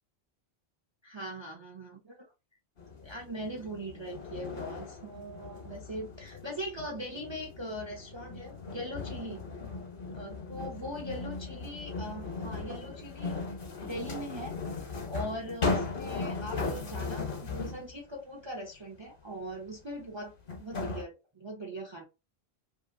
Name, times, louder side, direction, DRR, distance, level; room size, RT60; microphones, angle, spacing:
voice 1, 1.0-2.2 3.0-9.4 10.0-13.4 13.8-14.6 15.1-22.0, equal, 35° right, 0.4 m, -41 dB
sound 1, 2.8-17.9 19.7-19.8 20.5-21.0, left 3 dB, 55° left, 1.0 m, -37 dB
2.9 x 2.7 x 2.5 m
omnidirectional pair, 1.1 m